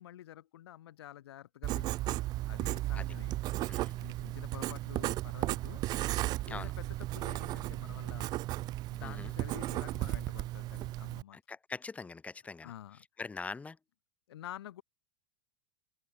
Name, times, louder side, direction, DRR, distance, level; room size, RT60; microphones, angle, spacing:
voice 1, 0.0-3.4 4.0-5.8 6.5-8.3 8.9-11.4 12.6-13.1 14.3-14.8, left 12 dB, 85° left, 3.7 m, -49 dB
Writing, 1.6-11.2, right 16 dB, 30° right, 0.6 m, -35 dB
voice 2, 3.6-4.1 6.5-6.7 9.0-9.3 11.3-12.7 13.2-13.8, left 4 dB, 10° left, 4.0 m, -43 dB
open air
supercardioid pair, 145°, 13 cm